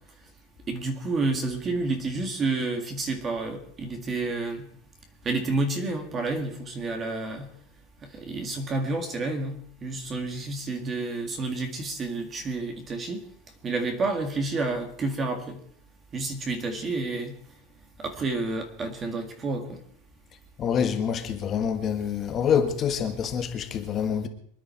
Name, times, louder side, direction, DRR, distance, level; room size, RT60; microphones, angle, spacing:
voice 1, 0.7-4.6 5.2-7.5 8.1-9.6 9.8-13.2 13.6-15.6 16.1-17.3 18.0-19.8, right 3 dB, 20° right, 1.9 m, -29 dB
voice 2, 20.6-24.3, left 7 dB, 25° left, 1.4 m, -26 dB
25.5 x 10.5 x 4.5 m
supercardioid pair, 155°, 0 cm